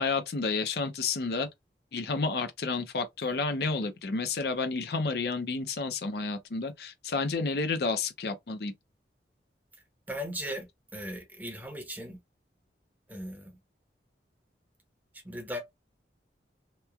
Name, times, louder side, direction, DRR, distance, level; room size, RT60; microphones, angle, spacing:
voice 1, 0.0-1.5 1.9-8.7, left 4 dB, 60° left, 0.5 m, -30 dB
voice 2, 10.1-10.7 10.9-12.2 13.1-13.6 15.2-15.6, equal, 10° right, 0.7 m, -37 dB
2.9 x 2.1 x 2.3 m
head